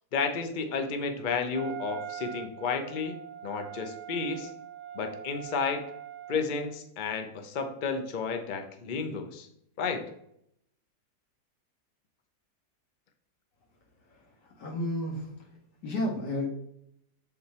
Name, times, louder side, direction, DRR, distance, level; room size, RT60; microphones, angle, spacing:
voice 1, 0.1-3.2 3.4-4.5 4.9-5.8 6.3-9.5 9.8-10.0, left 5 dB, 50° left, 6 dB, 0.6 m, -32 dB
Wind instrument woodwind instrument, 1.5-6.8, right 11 dB, 75° right, 1.1 m, -42 dB
voice 2, 14.6-15.3 15.8-16.5, left 1 dB, 85° left, -1 dB, 2.2 m, -31 dB
7.8 x 3.8 x 4.2 m, 0.75 s
omnidirectional pair, 1.8 m